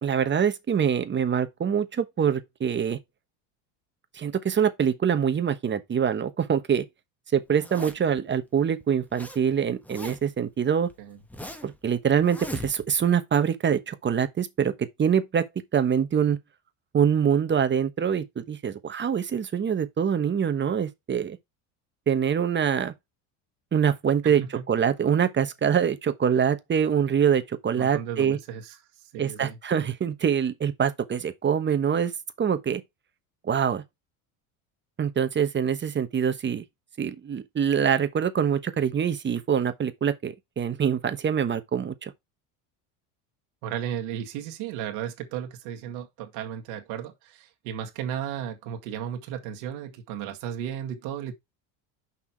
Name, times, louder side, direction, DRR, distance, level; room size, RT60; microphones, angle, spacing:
voice 1, 0.0-3.0 4.1-6.8 7.3-10.9 11.6-15.4 15.7-16.4 16.9-21.4 22.1-22.9 23.7-24.4 24.7-28.4 29.2-32.1 32.4-32.8 33.4-33.8 35.0-36.6 37.0-42.1, right 8 dB, 25° right, 1.1 m, -24 dB
Zipper (clothing), 7.5-8.2 8.8-9.4 9.7-10.4 10.9-11.8 12.2-13.1, left 1 dB, 5° left, 1.2 m, -40 dB
voice 2, 24.2-24.6 27.7-28.8 29.1-29.6 43.6-51.3, right 9 dB, 75° right, 1.9 m, -34 dB
6.4 x 5.6 x 4.5 m
supercardioid pair, 115°, 42 cm